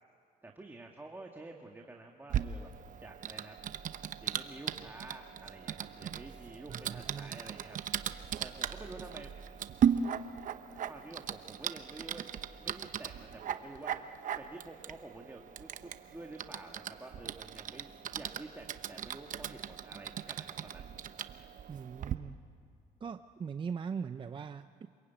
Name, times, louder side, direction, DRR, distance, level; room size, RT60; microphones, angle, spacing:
voice 1, 0.4-2.7 3.0-3.7 4.2-7.8 8.4-9.3 10.8-12.3 12.6-14.0 14.4-20.9 21.2-21.3, right 2 dB, 10° right, 2 dB, 1.8 m, -49 dB
Typing, 2.3-22.1, right 8 dB, 50° right, 0.9 m, -38 dB
voice 2, 6.7-7.4 21.7-22.4 23.0-24.9, right 6 dB, 30° right, 10 dB, 0.6 m, -40 dB
26.0 x 22.0 x 9.3 m, 2.4 s
cardioid pair, 110°, 17 cm